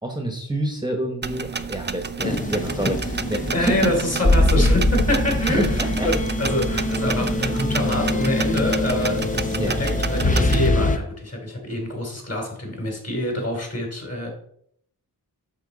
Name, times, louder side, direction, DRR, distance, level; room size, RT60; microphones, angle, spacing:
voice 1, 0.0-3.9 4.6-4.7 5.5-6.1 9.5-9.9, right 1 dB, 10° right, 3 dB, 1.2 m, -27 dB
sound 1, 1.2-10.7, right 6 dB, 30° right, 0.5 m, -30 dB
sound 2, 2.2-11.0, left 2 dB, 20° left, 0.7 m, -23 dB
voice 2, 3.5-14.3, left 1 dB, 40° left, 1 dB, 3.1 m, -26 dB
8.3 x 6.2 x 4.0 m, 0.67 s
wide cardioid pair, 75°, 39 cm